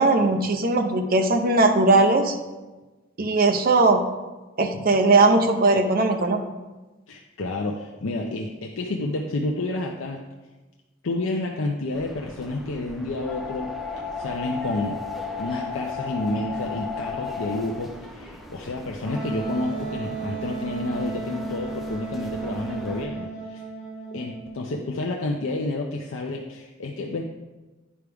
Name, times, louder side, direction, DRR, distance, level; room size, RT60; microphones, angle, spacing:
voice 1, 0.0-2.4 3.2-4.0 4.6-6.4, right 3 dB, 45° right, 5 dB, 0.6 m, -19 dB
voice 2, 7.1-10.2 11.0-15.0 15.4-23.6 24.1-27.2, left 2 dB, 75° left, 0 dB, 0.6 m, -30 dB
sound 1, 11.9-23.1, left 4 dB, ahead, 0.5 m, -36 dB
Wind instrument woodwind instrument, 19.1-24.6, right 4 dB, 40° left, 2.6 m, -34 dB
9.8 x 4.7 x 3.5 m, 1.2 s
head